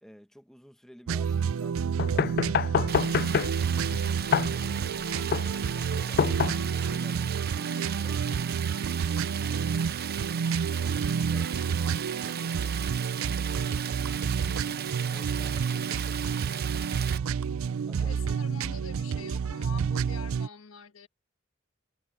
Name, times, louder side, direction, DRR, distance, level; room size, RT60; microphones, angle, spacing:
voice 1, 0.0-3.3 4.4-4.9 5.4-8.3 10.8-12.8 15.1-16.7 17.9-18.7, equal, ahead, 1.3 m, -53 dB
sound 1, 1.1-20.5, right 6 dB, 85° right, 0.4 m, -29 dB
sound 2, 2.0-7.0, left 7 dB, 50° left, 0.3 m, -28 dB
Stream, 2.9-17.2, right 9 dB, 50° right, 0.8 m, -37 dB
voice 2, 5.0-7.1 9.4-9.7 14.4-15.2 17.9-21.1, left 4 dB, 85° left, 1.3 m, -48 dB
head